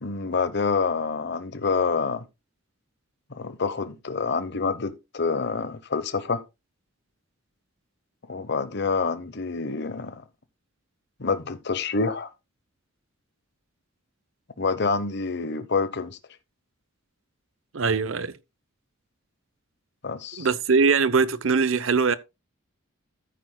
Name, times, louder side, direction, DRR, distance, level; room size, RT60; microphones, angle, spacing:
voice 1, 0.0-2.3 3.3-6.4 8.3-10.2 11.2-12.3 14.6-16.2 20.0-20.5, left 4 dB, 55° left, 0.9 m, -27 dB
voice 2, 17.7-18.3 20.4-22.2, right 5 dB, 70° right, 0.8 m, -21 dB
13.5 x 9.1 x 2.2 m
head